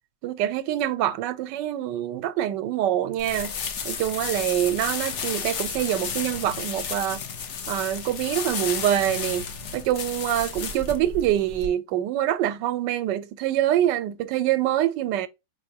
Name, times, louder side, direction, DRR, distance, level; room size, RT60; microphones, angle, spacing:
voice 1, 0.2-3.5 3.8-7.2 7.7-9.5 9.7-15.3, right 12 dB, 90° right, 1.2 m, -25 dB
sound 1, 3.2-11.7, left 6 dB, 55° left, 0.8 m, -32 dB
4.9 x 3.4 x 2.7 m
omnidirectional pair, 1.9 m